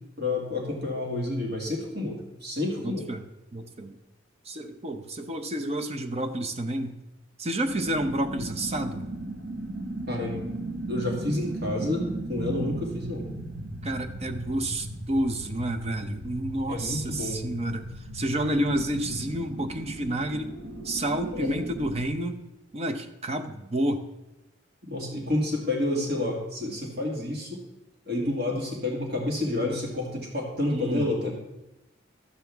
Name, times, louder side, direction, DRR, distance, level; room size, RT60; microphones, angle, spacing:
voice 1, 0.2-3.1 10.1-10.4 10.9-13.3 16.7-17.4 21.3-21.5 24.8-27.6 28.1-31.3, left 2 dB, 55° right, -2 dB, 2.3 m, -29 dB
voice 2, 2.8-3.2 3.5-4.0 4.5-7.0 7.4-9.1 13.8-17.9 18.1-20.5 20.8-22.4 22.7-24.0 30.7-31.1, right 1 dB, 35° right, 8 dB, 0.7 m, -29 dB
sound 1, 7.6-22.0, right 2 dB, 90° right, 1.2 m, -37 dB
12.5 x 7.7 x 3.5 m, 0.95 s
head